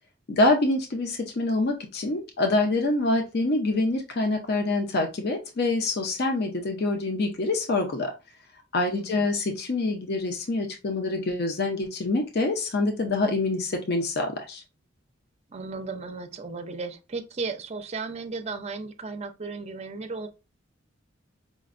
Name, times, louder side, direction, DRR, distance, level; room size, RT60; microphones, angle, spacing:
voice 1, 0.3-8.1 8.7-14.6, left 2 dB, 55° left, 0.6 m, -26 dB
voice 2, 8.9-9.3 15.5-20.3, right 4 dB, 35° right, 0.5 m, -35 dB
5.1 x 2.1 x 2.5 m
head